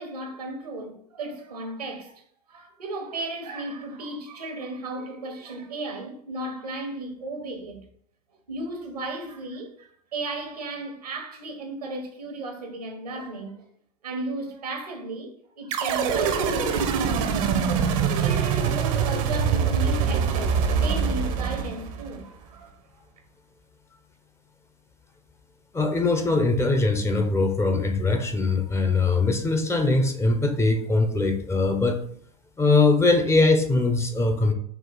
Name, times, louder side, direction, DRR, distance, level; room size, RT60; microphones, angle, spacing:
voice 1, 0.0-2.2 2.5-7.9 8.5-13.7 14.0-17.5 17.9-22.7, right 2 dB, 90° right, 1.0 m, -35 dB
sound 1, 15.7-22.2, right 6 dB, 60° right, 0.7 m, -24 dB
voice 2, 25.7-32.0 32.6-34.5, left 3 dB, 15° left, 0.5 m, -21 dB
4.5 x 2.4 x 3.8 m
hypercardioid pair, 90°, 19 cm